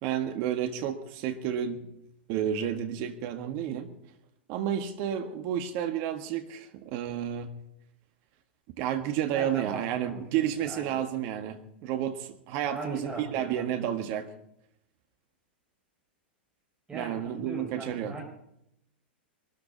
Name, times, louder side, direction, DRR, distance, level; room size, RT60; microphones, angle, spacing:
voice 1, 0.0-1.8 2.3-3.9 4.5-7.5 8.8-14.3 16.9-18.1, right 10 dB, 45° right, 6 dB, 1.6 m, -31 dB
voice 2, 9.3-11.0 12.6-13.8 16.9-18.2, right 3 dB, 15° right, 0 dB, 5.6 m, -40 dB
23.0 x 13.5 x 4.1 m, 0.76 s
figure-of-eight pair, 95°, 6 cm